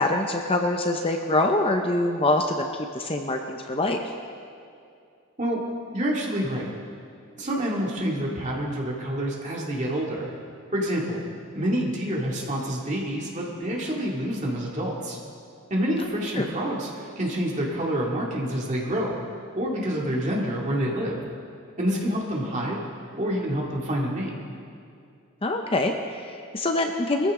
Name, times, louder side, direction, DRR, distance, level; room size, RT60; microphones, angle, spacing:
voice 1, 0.0-2.7 2.9-4.0 16.4-16.5 25.4-27.3, left 2 dB, 25° left, 4 dB, 0.7 m, -24 dB
voice 2, 5.9-6.7 7.4-10.3 10.7-11.2 11.5-15.2 15.7-19.2 19.5-21.2 21.8-22.8 23.2-24.3, equal, 35° right, -3 dB, 2.4 m, -27 dB
21.0 x 14.5 x 3.8 m, 2.4 s
head